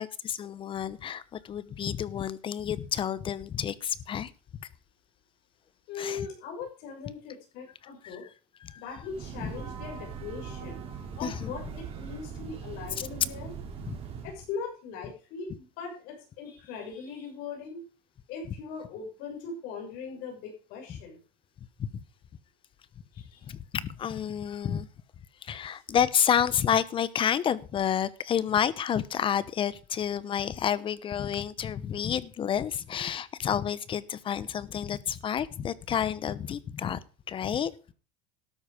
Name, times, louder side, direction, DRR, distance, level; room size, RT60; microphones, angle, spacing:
voice 1, 0.0-4.3 6.0-6.3 8.0-8.2 8.6-8.8 9.4-9.5 11.2-11.5 13.8-14.0 20.9-21.0 21.8-22.0 23.5-24.9 25.4-37.0 37.3-37.7, left 9 dB, 30° left, 0.9 m, -30 dB
voice 2, 5.9-8.2 8.7-10.8 11.2-13.5 14.2-17.8 18.3-21.2 23.1-23.5 25.6-25.8, left 5 dB, 65° left, 6.3 m, -40 dB
Breathing / Train, 8.9-14.5, right 6 dB, 35° right, 3.9 m, -41 dB
13.0 x 9.5 x 5.1 m
supercardioid pair, 125°, 16 cm